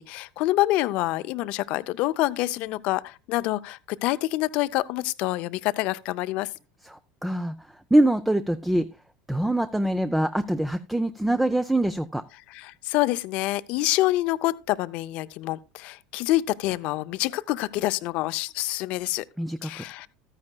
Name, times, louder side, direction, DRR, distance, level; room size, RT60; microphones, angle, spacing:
voice 1, 0.0-6.5 12.5-19.2 19.6-20.1, left 17 dB, 60° left, 0.4 m, -27 dB
voice 2, 6.8-7.5 7.9-8.9 9.3-12.2 19.4-19.8, right 1 dB, 5° right, 0.4 m, -24 dB
13.0 x 9.8 x 2.2 m
supercardioid pair, 105°, 2 cm